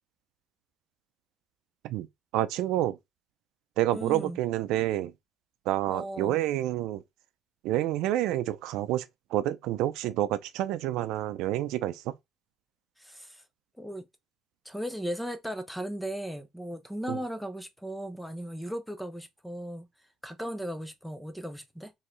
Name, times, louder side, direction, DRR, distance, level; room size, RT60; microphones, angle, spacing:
voice 1, 2.3-3.0 3.8-5.1 5.7-7.0 7.6-9.1 9.3-12.1 17.1-17.2, right 13 dB, 85° right, 0.5 m, -28 dB
voice 2, 3.9-4.4 5.9-6.4 13.0-13.4 13.8-14.1 14.6-19.9 20.2-21.9, equal, ahead, 0.6 m, -37 dB
4.6 x 3.1 x 3.1 m
cardioid pair, 150°, 0 cm